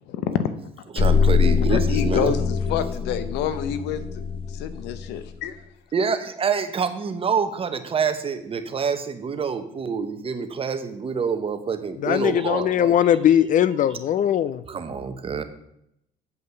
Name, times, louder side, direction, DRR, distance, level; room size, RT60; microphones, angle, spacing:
voice 1, 0.1-0.4 1.7-2.4 2.7-4.0 4.6-5.5, left 8 dB, 90° left, 12 dB, 0.8 m, -27 dB
voice 2, 0.9-2.4 5.9-12.9 14.7-15.4, right 6 dB, 35° right, 10 dB, 0.9 m, -27 dB
sound 1, 1.0-5.2, left 6 dB, 30° left, 1.2 m, -23 dB
voice 3, 12.0-14.6, left 10 dB, 50° left, 16 dB, 0.4 m, -20 dB
8.1 x 5.2 x 6.8 m, 0.76 s
cardioid pair, 110°, 17 cm